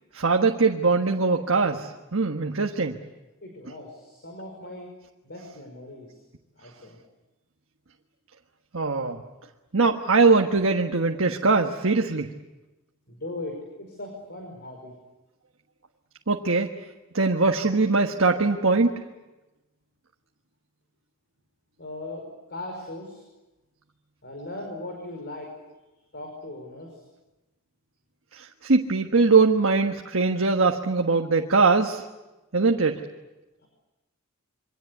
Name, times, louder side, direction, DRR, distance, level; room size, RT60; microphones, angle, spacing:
voice 1, 0.1-3.0 8.7-9.2 9.7-12.3 16.3-16.7 17.1-18.9 28.3-32.0 32.5-33.0, right 4 dB, 65° right, 3 dB, 1.4 m, -21 dB
voice 2, 3.4-4.9 5.2-6.2 6.6-7.0 13.1-14.9 21.8-23.2 24.2-25.5 26.1-27.0 33.6-33.7, left 2 dB, 50° left, 2 dB, 5.4 m, -39 dB
27.5 x 24.0 x 8.3 m, 1.1 s
head